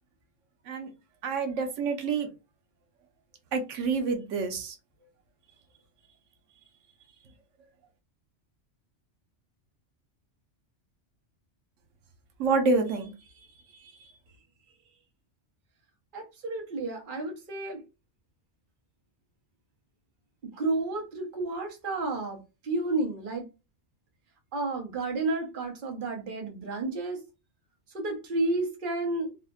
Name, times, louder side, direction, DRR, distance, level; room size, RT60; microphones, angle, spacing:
voice 1, 1.2-2.3 3.5-4.8 12.4-13.1, right 4 dB, 90° right, 1.0 m, -27 dB
voice 2, 16.1-17.8 20.5-23.5 24.5-27.2 27.9-29.4, right 2 dB, 45° right, 0.9 m, -31 dB
3.5 x 2.0 x 2.3 m
omnidirectional pair, 1.3 m